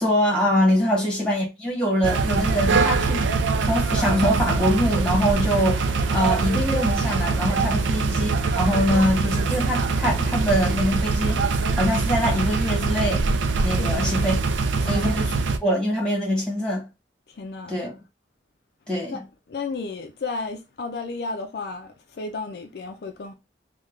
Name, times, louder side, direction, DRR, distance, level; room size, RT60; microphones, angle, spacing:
voice 1, 0.0-8.3 8.5-13.2 13.6-14.4 14.9-15.3 15.6-16.8 17.7-17.9 18.9-19.2, equal, 5° left, 1.2 m, -24 dB
sound 1, 2.0-15.6, right 4 dB, 90° right, 0.4 m, -23 dB
voice 2, 7.7-8.1 13.8-14.2 14.8-15.1 17.3-17.9 19.1-19.2 19.5-23.3, left 3 dB, 60° left, 0.4 m, -33 dB
3.2 x 2.2 x 3.6 m
head